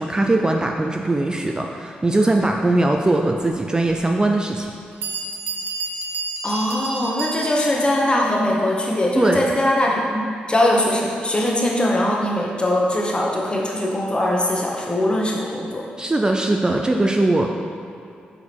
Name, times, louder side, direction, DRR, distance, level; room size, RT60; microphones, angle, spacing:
voice 1, 0.0-4.7 9.2-9.4 16.0-17.6, right 2 dB, 20° right, 2 dB, 0.4 m, -20 dB
Bell, 4.6-4.7 5.0-7.8, right 3 dB, 75° right, 0.8 m, -30 dB
voice 2, 6.4-15.8, left 1 dB, 25° left, -2 dB, 1.2 m, -21 dB
6.7 x 4.7 x 3.5 m, 2.5 s
cardioid pair, 65°, 4 cm